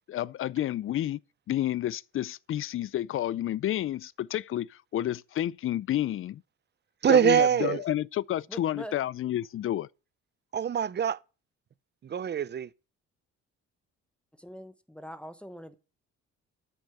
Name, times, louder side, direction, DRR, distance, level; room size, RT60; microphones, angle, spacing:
voice 1, 0.1-1.2 1.5-6.4 7.1-9.9, left 12 dB, 45° left, 0.4 m, -30 dB
voice 2, 7.0-7.8 10.5-11.2 12.0-12.7, right 8 dB, 35° right, 0.5 m, -24 dB
voice 3, 8.5-8.9 14.4-15.7, equal, 5° left, 0.9 m, -43 dB
8.5 x 6.3 x 6.9 m
cardioid pair, 90°, 30 cm